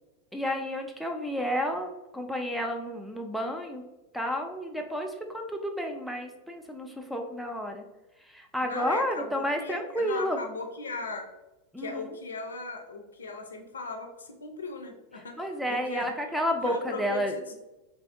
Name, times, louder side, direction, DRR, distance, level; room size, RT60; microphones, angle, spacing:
voice 1, 0.3-3.8 4.1-7.9 8.2-10.4 11.7-12.1 15.4-17.4, equal, ahead, 2 dB, 0.3 m, -31 dB
voice 2, 8.6-11.3 11.8-15.4 15.7-16.1 16.6-17.5, left 3 dB, 70° left, 4 dB, 0.4 m, -38 dB
3.3 x 2.5 x 2.5 m, 1.0 s
figure-of-eight pair, 90°, 0 cm